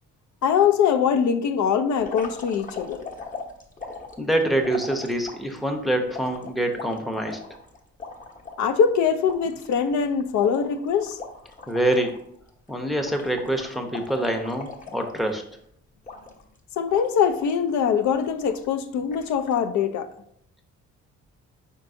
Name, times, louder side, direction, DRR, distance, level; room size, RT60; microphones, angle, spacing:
voice 1, 0.4-3.0 8.6-11.2 16.8-20.1, left 7 dB, 70° left, 0.5 m, -22 dB
sound 1, 2.0-5.6 6.1-8.6 9.0-9.1 9.3-12.2 12.5-12.7 13.0-15.5 16.0-16.6 16.9-17.6 18.1-18.7 19.1-19.6, left 4 dB, 25° left, 0.8 m, -40 dB
voice 2, 4.2-7.4 11.7-12.2 12.7-15.4, right 1 dB, ahead, 0.6 m, -25 dB
4.5 x 4.5 x 2.6 m
cardioid pair, 90°, 30 cm